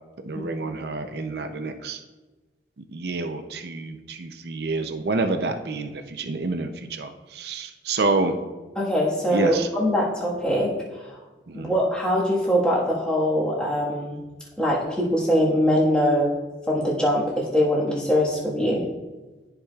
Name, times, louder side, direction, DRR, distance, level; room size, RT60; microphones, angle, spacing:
voice 1, 0.2-2.0 2.9-8.4 9.3-9.7 11.5-11.7, right 3 dB, 65° right, 7 dB, 0.5 m, -28 dB
voice 2, 8.7-10.7 11.5-14.2 14.6-16.3 16.7-18.8, equal, 5° left, -6 dB, 1.5 m, -22 dB
13.0 x 4.9 x 2.4 m, 1.2 s
head